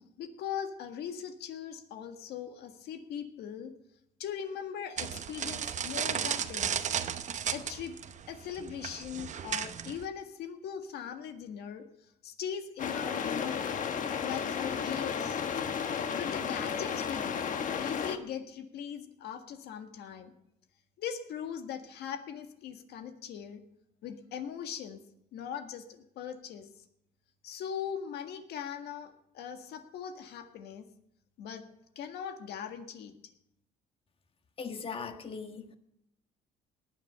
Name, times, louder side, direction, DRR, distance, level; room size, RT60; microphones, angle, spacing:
voice 1, 0.0-3.7 4.2-7.0 7.5-8.0 8.3-13.7 14.2-15.4 16.1-20.3 21.0-23.6 24.0-25.0 25.3-26.7 27.4-30.9 31.4-31.7 32.0-33.1, left 8 dB, 75° left, 1.8 m, -40 dB
sound 1, 5.0-10.1, right 8 dB, 45° right, 0.9 m, -34 dB
sound 2, 12.8-18.2, left 7 dB, 50° left, 1.2 m, -33 dB
voice 2, 34.6-35.8, left 5 dB, 35° left, 1.6 m, -39 dB
18.5 x 10.0 x 5.6 m
cardioid pair, 110°, 17 cm